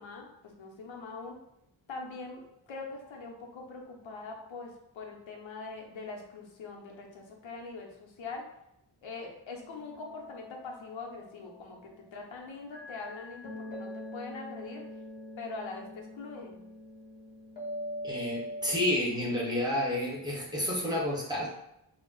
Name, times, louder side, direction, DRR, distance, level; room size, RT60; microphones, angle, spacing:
voice 1, 0.0-1.4 1.9-2.4 2.7-8.4 9.0-14.8 15.4-16.6, left 3 dB, 75° left, 1 dB, 0.7 m, -43 dB
sound 1, 9.5-12.2 12.7-19.0, equal, 20° left, 0.7 m, -43 dB
voice 2, 18.0-21.5, left 1 dB, 10° right, -5 dB, 0.8 m, -30 dB
2.4 x 2.0 x 3.7 m, 0.80 s
wide cardioid pair, 125°, 47 cm